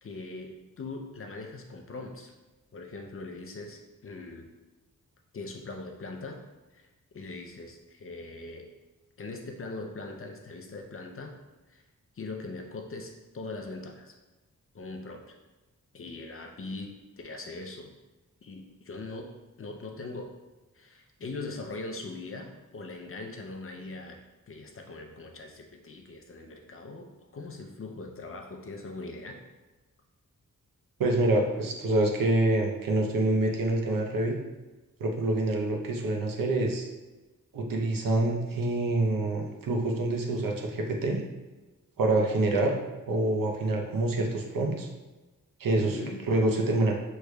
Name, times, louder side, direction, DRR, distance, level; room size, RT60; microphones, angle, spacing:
voice 1, 0.0-2.3 2.7-4.5 5.3-6.4 6.7-6.9 7.1-8.7 9.2-11.3 11.7-11.8 12.2-14.1 14.7-15.4 15.9-17.9 18.4-19.3 19.6-20.3 20.7-24.2 24.5-29.4 45.8-46.2, left 3 dB, 40° left, 2 dB, 0.5 m, -41 dB
voice 2, 31.0-34.4 35.0-36.9 37.5-41.2 42.0-42.8 43.1-44.9 45.6-46.0 46.3-47.0, right 2 dB, 80° right, 1 dB, 0.7 m, -26 dB
6.2 x 3.2 x 2.2 m, 1.1 s
wide cardioid pair, 175°, 33 cm